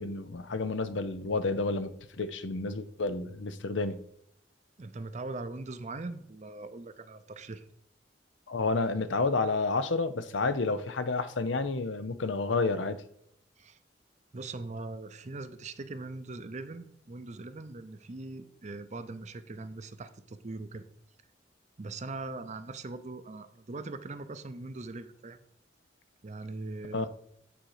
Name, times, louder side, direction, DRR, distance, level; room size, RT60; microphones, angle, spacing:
voice 1, 0.0-4.0 8.5-13.0 26.9-27.1, left 3 dB, 90° left, 0.7 m, -30 dB
voice 2, 4.8-7.6 13.6-13.8 14.3-20.8 21.8-25.4 26.2-27.1, right 3 dB, 40° right, 0.6 m, -41 dB
9.1 x 4.3 x 4.8 m
head